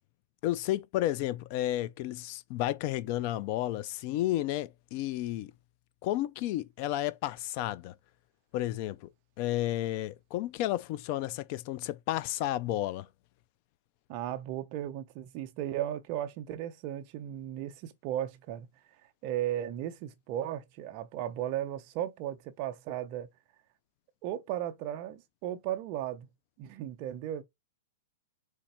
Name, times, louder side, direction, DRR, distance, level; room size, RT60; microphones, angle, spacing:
voice 1, 0.4-5.5 6.0-7.9 8.5-9.1 9.4-13.1, left 14 dB, 35° left, 0.3 m, -32 dB
voice 2, 14.1-18.7 19.2-23.3 24.2-26.3 26.6-27.4, right 11 dB, 30° right, 0.6 m, -35 dB
4.3 x 2.5 x 4.2 m
supercardioid pair, 170°, 0 cm